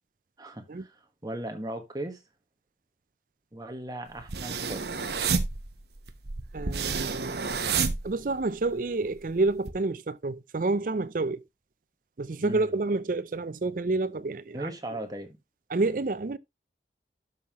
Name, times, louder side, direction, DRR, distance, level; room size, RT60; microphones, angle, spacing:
voice 1, 0.4-2.2 3.5-4.9 12.4-12.7 14.5-15.4, right 1 dB, 20° right, 1.5 m, -37 dB
sound 1, 4.2-8.7 9.0-9.7, right 5 dB, 65° right, 1.0 m, -30 dB
voice 2, 6.5-7.5 8.0-11.4 12.2-14.7 15.7-16.4, right 3 dB, 50° right, 0.5 m, -29 dB
12.0 x 5.7 x 3.0 m
head